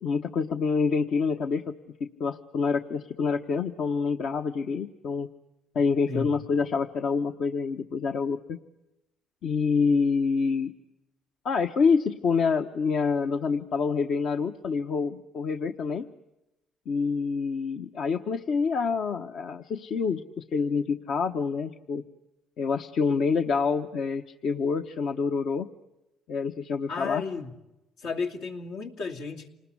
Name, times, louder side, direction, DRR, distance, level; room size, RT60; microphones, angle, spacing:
voice 1, 0.0-1.7 2.0-5.3 5.7-8.6 9.4-10.7 11.4-16.1 16.9-22.0 22.6-25.7 26.3-27.2, left 5 dB, 65° left, 6 dB, 1.1 m, -27 dB
voice 2, 26.9-27.5 28.0-29.5, left 4 dB, 80° left, 2 dB, 2.8 m, -33 dB
28.5 x 20.0 x 9.8 m, 0.95 s
cardioid pair, 85°, 0 cm